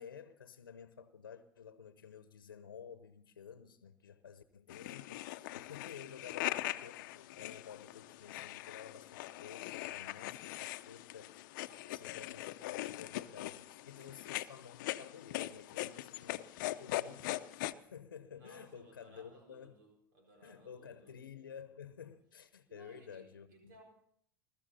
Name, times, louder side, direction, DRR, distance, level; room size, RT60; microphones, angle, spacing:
voice 1, 0.0-19.8 20.4-23.7, left 7 dB, 90° left, 0.9 m, -52 dB
sound 1, 4.7-17.7, left 16 dB, 65° left, 0.7 m, -41 dB
voice 2, 11.7-12.3 14.0-14.2 18.3-21.2 22.7-23.8, right 2 dB, 75° right, 4.2 m, -62 dB
21.5 x 13.5 x 4.2 m
hypercardioid pair, 85°, 11 cm